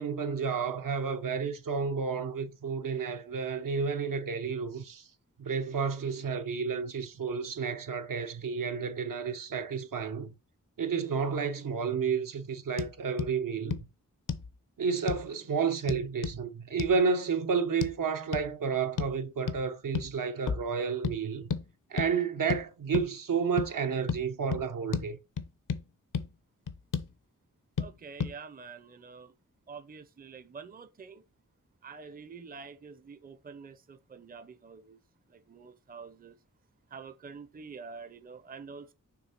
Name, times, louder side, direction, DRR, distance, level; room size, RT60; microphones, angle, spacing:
voice 1, 0.0-5.1 5.4-10.3 10.8-13.8 14.8-21.5 21.9-25.2, right 5 dB, 80° right, 0.9 m, -31 dB
sound 1, 12.8-12.9 13.2-13.3 13.7-13.8 14.3-14.5 15.1-15.3 15.9-16.4 16.8-16.9 17.8-17.9 18.3-18.5 19.0-19.2 19.5-19.6 19.9-20.1 20.5-20.7 21.0-21.2 21.5-21.6 22.0-22.1 22.5-22.6 22.9-23.1 23.6-23.7 24.1-24.2 24.5-24.6 24.9-25.1 25.4-25.8 26.1-26.3 26.7-27.1 27.8-27.9 28.2-28.3, left 6 dB, 70° left, 0.7 m, -32 dB
voice 2, 27.8-29.3 29.7-31.2 31.8-35.0 35.3-36.4 36.9-38.9, right 5 dB, 25° right, 0.5 m, -47 dB
6.1 x 3.5 x 5.7 m
wide cardioid pair, 120°, 32 cm